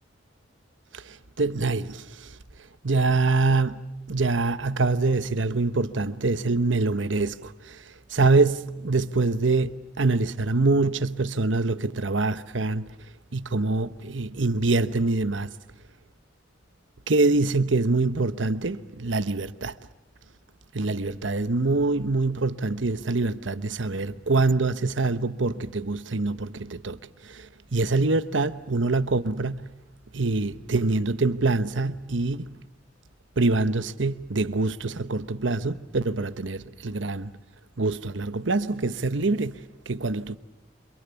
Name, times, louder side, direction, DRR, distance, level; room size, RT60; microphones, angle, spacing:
voice 1, 0.9-2.4 2.8-3.8 4.1-7.8 8.1-12.9 13.3-15.5 17.1-19.8 20.7-29.7 30.1-32.5 33.4-37.3 37.8-40.4, right 3 dB, 85° right, 1.1 m, -25 dB
30.0 x 27.0 x 7.0 m
head